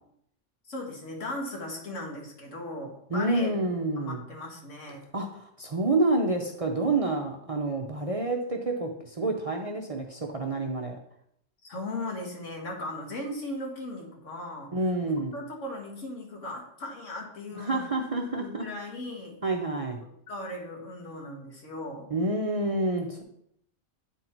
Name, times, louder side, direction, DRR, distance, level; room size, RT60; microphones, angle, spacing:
voice 1, 0.7-3.5 4.0-5.1 11.7-14.7 15.3-17.9 18.4-19.3 20.0-22.1, left 1 dB, 75° left, 0 dB, 1.9 m, -37 dB
voice 2, 3.1-4.2 5.1-11.0 14.7-15.3 17.6-18.7 19.4-20.0 22.1-23.2, right 2 dB, 35° right, 1 dB, 0.6 m, -28 dB
9.0 x 4.1 x 4.4 m, 0.72 s
omnidirectional pair, 1.3 m